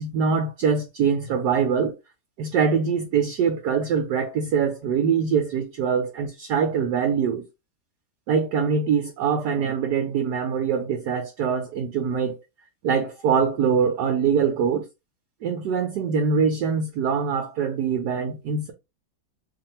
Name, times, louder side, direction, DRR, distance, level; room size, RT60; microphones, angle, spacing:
voice 1, 0.0-1.9 2.4-7.5 8.3-12.4 12.8-14.8 15.4-18.7, right 6 dB, 70° right, 1.0 m, -23 dB
3.0 x 2.5 x 4.1 m
omnidirectional pair, 2.3 m